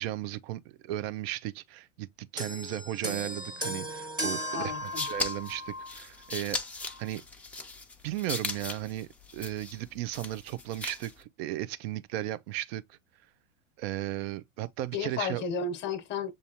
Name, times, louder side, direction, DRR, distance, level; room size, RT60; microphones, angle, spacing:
voice 1, 0.0-6.6 7.0-7.2 8.0-12.8 13.8-15.4, right 14 dB, 55° right, 0.6 m, -35 dB
sound 1, 2.4-6.0 6.9-7.0, equal, 10° right, 1.3 m, -36 dB
voice 2, 4.5-5.0 14.9-16.3, left 5 dB, 30° left, 1.0 m, -33 dB
sound 2, 4.6-11.2, left 3 dB, 5° left, 0.7 m, -38 dB
7.0 x 2.6 x 2.9 m
hypercardioid pair, 125°, 37 cm